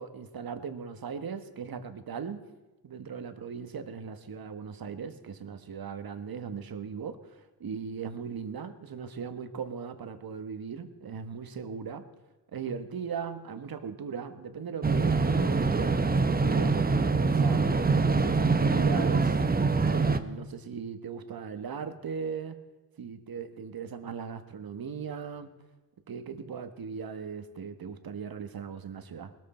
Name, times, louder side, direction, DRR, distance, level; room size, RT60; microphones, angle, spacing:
voice 1, 0.0-2.4 2.8-12.1 12.5-16.0 16.4-19.3 19.9-22.6 23.0-25.5 26.1-29.3, right 6 dB, 55° right, 9 dB, 1.4 m, -38 dB
sound 1, 14.8-20.2, right 4 dB, 20° right, 0.9 m, -24 dB
20.0 x 13.5 x 4.4 m, 1.2 s
cardioid pair, 80°, 43 cm